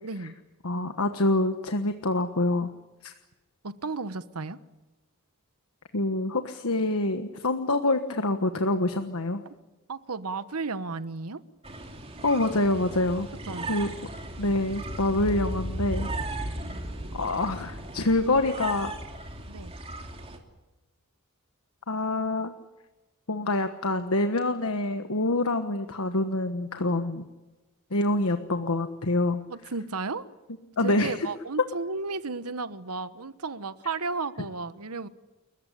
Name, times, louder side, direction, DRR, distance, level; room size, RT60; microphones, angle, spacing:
voice 1, 0.0-0.3 3.6-4.6 9.9-11.4 13.5-13.8 19.5-19.7 29.5-30.2 30.8-35.1, right 4 dB, 90° right, 1.2 m, -33 dB
voice 2, 0.6-2.7 3.0-3.1 5.9-9.4 12.2-13.3 13.7-13.9 14.4-16.5 17.1-18.9 21.9-22.5 23.3-27.3 27.9-29.4 30.8-31.3, left 2 dB, 75° left, 1.3 m, -26 dB
sound 1, 11.6-20.4, right 1 dB, 25° right, 2.9 m, -36 dB
30.0 x 15.0 x 10.0 m
head